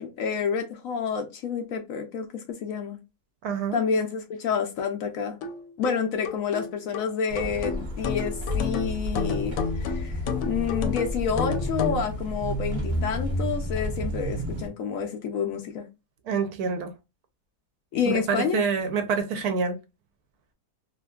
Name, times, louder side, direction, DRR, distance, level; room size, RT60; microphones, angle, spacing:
voice 1, 0.0-3.0 3.7-5.4 5.8-15.9 17.9-18.6, left 6 dB, 70° left, 0.8 m, -29 dB
voice 2, 3.4-3.8 16.3-16.9 18.1-19.8, right 5 dB, 75° right, 1.0 m, -27 dB
sound 1, 5.4-12.1, left 6 dB, 85° left, 1.2 m, -32 dB
sound 2, 7.3-14.7, equal, 50° right, 0.8 m, -31 dB
2.8 x 2.5 x 2.2 m
omnidirectional pair, 1.8 m